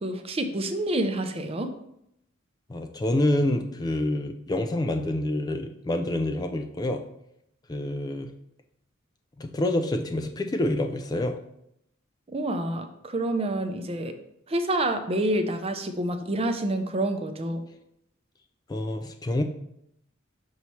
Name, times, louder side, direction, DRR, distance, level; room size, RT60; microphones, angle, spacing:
voice 1, 0.0-1.7 12.3-14.1 14.5-17.6, right 1 dB, 30° right, 7 dB, 0.5 m, -28 dB
voice 2, 2.7-7.0 7.7-8.3 9.4-11.4 18.7-19.4, left 1 dB, 20° left, 5 dB, 0.3 m, -27 dB
5.6 x 3.1 x 5.5 m, 0.77 s
head